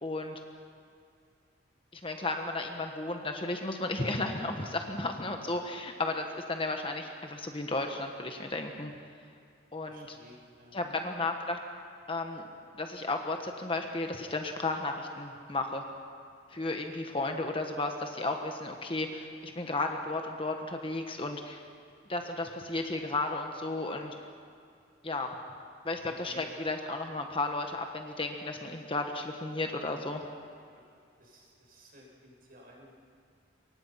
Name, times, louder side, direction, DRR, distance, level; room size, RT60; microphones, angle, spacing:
voice 1, 0.0-0.4 1.9-8.9 9.7-10.2 10.7-11.6 12.1-12.4 12.7-15.8 16.5-21.6 22.1-24.1 25.0-25.3 25.8-30.2, left 2 dB, 25° left, 4 dB, 1.4 m, -34 dB
voice 2, 9.8-11.0 26.2-26.4 31.2-32.9, equal, 45° right, -2 dB, 6.8 m, -55 dB
27.5 x 24.0 x 5.8 m, 2.4 s
head